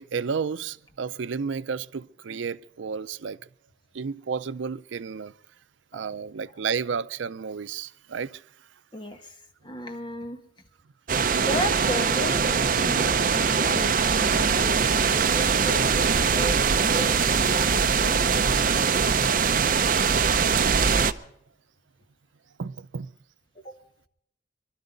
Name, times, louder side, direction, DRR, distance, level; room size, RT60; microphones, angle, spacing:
voice 1, 0.0-3.5 3.9-5.3 5.9-8.4 15.6-15.7 18.5-18.8 20.3-20.8 22.6-23.1, right 6 dB, 85° right, 0.5 m, -32 dB
voice 2, 8.9-9.3 9.6-10.4 11.4-18.1 23.6-23.8, left 1 dB, 25° left, 1.5 m, -35 dB
sound 1, 11.1-21.1, right 5 dB, 45° right, 0.6 m, -22 dB
24.0 x 12.5 x 3.9 m
head